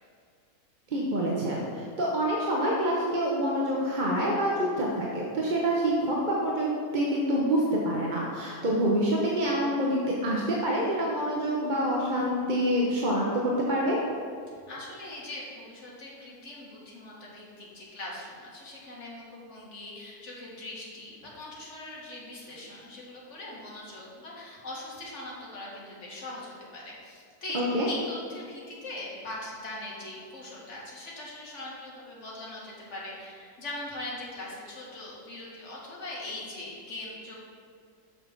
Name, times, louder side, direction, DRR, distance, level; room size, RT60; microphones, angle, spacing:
voice 1, 0.9-14.0 27.5-27.9, equal, 35° right, -4 dB, 1.0 m, -27 dB
voice 2, 14.5-27.6 27.8-37.5, left 2 dB, 50° left, -5 dB, 2.1 m, -41 dB
6.8 x 6.7 x 6.0 m, 2.2 s
omnidirectional pair, 1.6 m